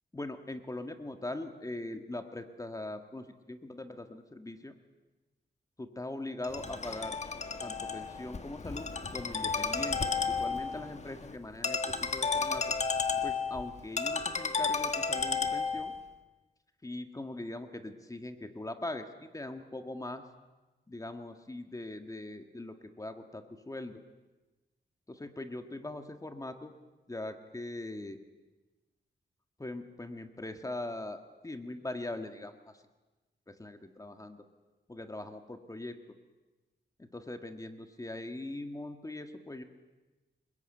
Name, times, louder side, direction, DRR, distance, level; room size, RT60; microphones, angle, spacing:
voice 1, 0.1-4.8 5.8-7.2 7.6-12.6 13.2-15.9 16.8-20.2 20.9-24.0 25.1-26.7 27.1-28.2 29.6-32.6 33.5-34.4 34.9-36.0 37.0-39.6, left 2 dB, 20° left, 6 dB, 1.7 m, -41 dB
Ringtone, 6.4-16.0, left 5 dB, 40° left, 1.5 m, -33 dB
26.5 x 21.5 x 9.0 m, 1.1 s
wide cardioid pair, 125°, 18 cm